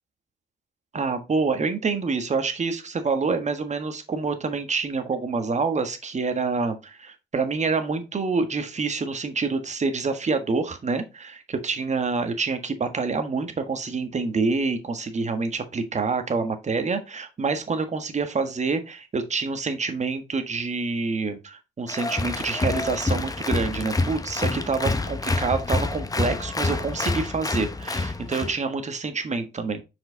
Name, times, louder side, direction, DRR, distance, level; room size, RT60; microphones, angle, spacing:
voice 1, 0.9-29.8, right 4 dB, 40° right, 8 dB, 1.6 m, -27 dB
Applause, 21.9-28.5, left 2 dB, 20° left, 1.0 m, -27 dB
6.0 x 5.0 x 4.0 m, 0.26 s
hypercardioid pair, 50°, 18 cm